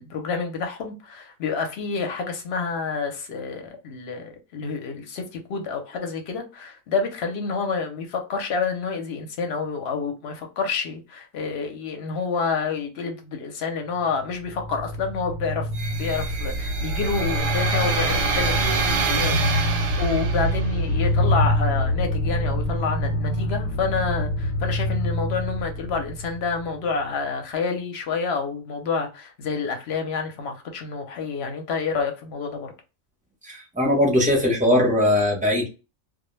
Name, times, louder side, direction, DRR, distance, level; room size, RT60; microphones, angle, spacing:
voice 1, 0.0-19.6 20.0-32.7, left 5 dB, 60° left, 0.8 m, -28 dB
sound 1, 14.2-27.0, equal, 90° left, 1.0 m, -26 dB
sound 2, 15.8-20.8, right 5 dB, 65° right, 0.8 m, -27 dB
voice 2, 33.4-35.7, left 1 dB, 10° right, 0.5 m, -20 dB
2.1 x 2.1 x 3.0 m
omnidirectional pair, 1.4 m